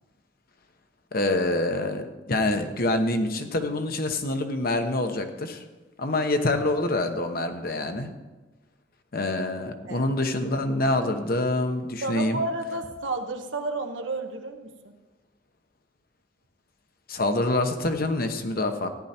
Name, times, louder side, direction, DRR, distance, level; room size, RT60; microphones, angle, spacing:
voice 1, 1.1-5.6 6.0-8.1 9.1-12.4 17.1-18.9, left 2 dB, 50° left, 7 dB, 1.0 m, -26 dB
voice 2, 12.0-14.9, right 2 dB, 80° right, 4 dB, 1.1 m, -31 dB
14.5 x 10.0 x 4.4 m, 1.2 s
head